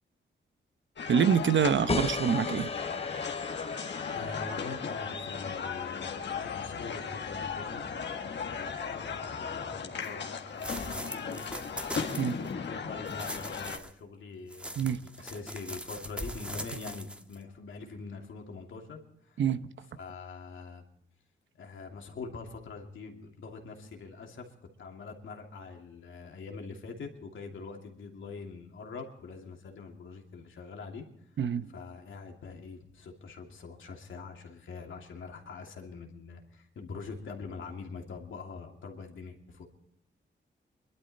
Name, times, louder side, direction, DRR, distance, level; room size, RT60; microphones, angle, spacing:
sound 1, 1.0-13.8, left 6 dB, 65° left, 1.6 m, -37 dB
voice 1, 1.1-2.7 12.2-12.4 14.8-15.0 19.4-19.6 31.4-31.7, right 7 dB, 70° right, 12 dB, 1.0 m, -26 dB
sound 2, 1.9-7.1, left 4 dB, 30° left, 0.8 m, -38 dB
voice 2, 4.1-7.9 8.4-11.6 12.6-19.4 20.0-20.8 21.5-31.1 31.7-39.7, left 4 dB, 80° left, 1 dB, 2.8 m, -44 dB
sound 3, 10.0-10.1 10.6-12.5 13.1-13.9 14.5-17.4, equal, 5° right, 1.4 m, -41 dB
23.0 x 12.0 x 4.2 m, 0.76 s
cardioid pair, 75°, 20 cm